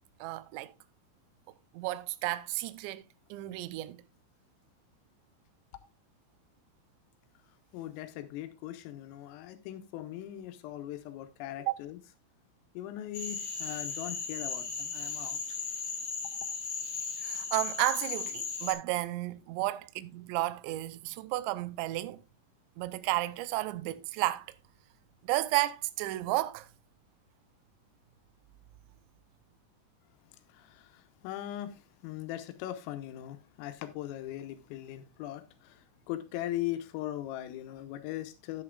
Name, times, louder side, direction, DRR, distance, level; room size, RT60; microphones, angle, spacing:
voice 1, 0.2-0.7 1.7-3.0 3.3-4.0 11.6-11.7 17.2-22.2 22.8-24.5 25.2-26.7, right 18 dB, 85° right, 2.6 m, -32 dB
voice 2, 7.7-12.0 12.8-15.6 30.5-38.6, left 13 dB, 85° left, 3.5 m, -40 dB
Cricket / Frog, 13.1-18.7, left 5 dB, 35° left, 3.2 m, -36 dB
11.0 x 10.0 x 2.4 m
omnidirectional pair, 5.9 m